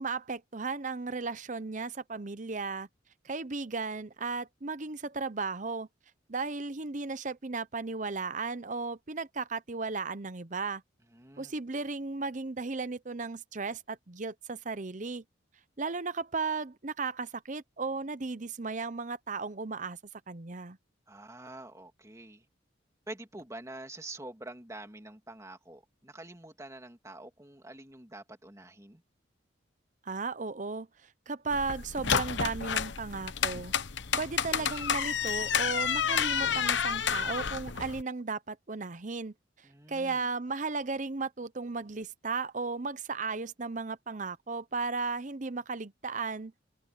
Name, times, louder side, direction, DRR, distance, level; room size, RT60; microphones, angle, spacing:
voice 1, 0.0-2.9 3.2-5.9 6.3-10.8 11.4-15.2 15.8-20.0 20.3-20.8 30.1-30.9 31.3-33.7 34.2-39.3 39.9-46.5, right 4 dB, 40° right, 0.8 m, -35 dB
voice 2, 11.1-11.5 21.1-22.4 23.1-29.0 39.6-40.3, right 2 dB, 15° right, 2.9 m, -46 dB
sound 1, 31.5-38.0, left 7 dB, 70° left, 1.0 m, -30 dB
head